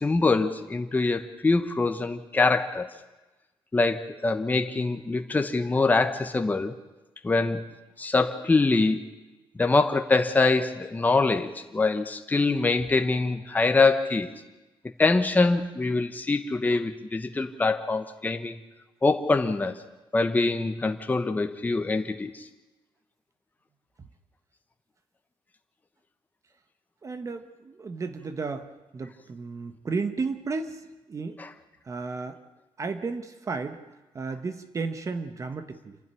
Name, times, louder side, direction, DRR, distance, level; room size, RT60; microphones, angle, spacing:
voice 1, 0.0-2.9 3.7-6.8 7.2-7.7 8.0-9.0 9.6-14.3 15.0-18.6 19.0-19.8 20.1-22.4 31.4-31.5, left 3 dB, 20° left, 1.2 m, -24 dB
voice 2, 27.0-31.4 31.8-32.4 32.8-33.8 34.1-36.0, right 4 dB, 35° right, 1.3 m, -33 dB
27.5 x 12.0 x 10.0 m
wide cardioid pair, 145°, 9 cm